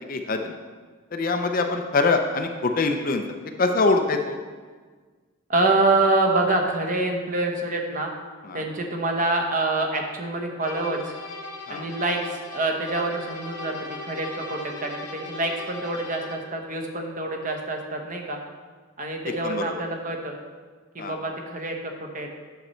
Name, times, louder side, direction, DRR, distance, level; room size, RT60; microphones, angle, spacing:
voice 1, 0.1-0.6 1.1-3.2 3.6-4.4 8.4-8.6 11.7-11.9 19.4-19.6 21.0-21.1, left 3 dB, 40° left, 5 dB, 0.5 m, -24 dB
voice 2, 5.5-8.1 8.5-11.1 11.7-18.4 19.0-20.4 20.9-22.3, right 2 dB, 40° right, 2 dB, 1.0 m, -26 dB
sound 1, 10.6-16.5, left 3 dB, 75° left, 1.5 m, -38 dB
9.2 x 6.6 x 4.4 m, 1.5 s
head